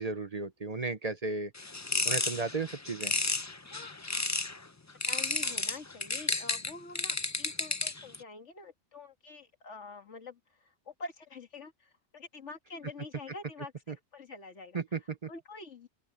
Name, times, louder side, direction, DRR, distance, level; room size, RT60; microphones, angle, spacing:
voice 1, 0.0-1.5 2.0-3.2 13.9-14.0 14.7-15.3, right 3 dB, 35° right, 0.9 m, -34 dB
sound 1, 1.5-4.6 5.0-8.2, left 3 dB, 20° left, 0.6 m, -32 dB
voice 2, 5.1-14.8 15.3-15.9, left 3 dB, 85° left, 2.2 m, -46 dB
open air
omnidirectional pair, 1.2 m